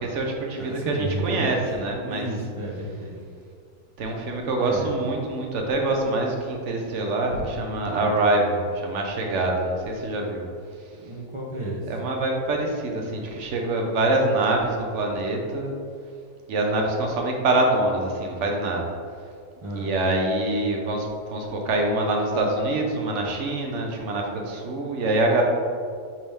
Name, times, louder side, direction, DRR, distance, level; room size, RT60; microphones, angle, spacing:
voice 1, 0.0-2.2 4.0-10.5 11.9-15.7 16.5-18.9 19.7-25.4, right 2 dB, 55° right, 1 dB, 1.0 m, -25 dB
voice 2, 0.6-1.6 2.1-3.2 4.6-4.9 8.0-8.2 11.0-11.9 19.6-19.9, right 1 dB, 30° right, -3 dB, 0.6 m, -32 dB
5.3 x 5.3 x 3.4 m, 2.2 s
omnidirectional pair, 1.7 m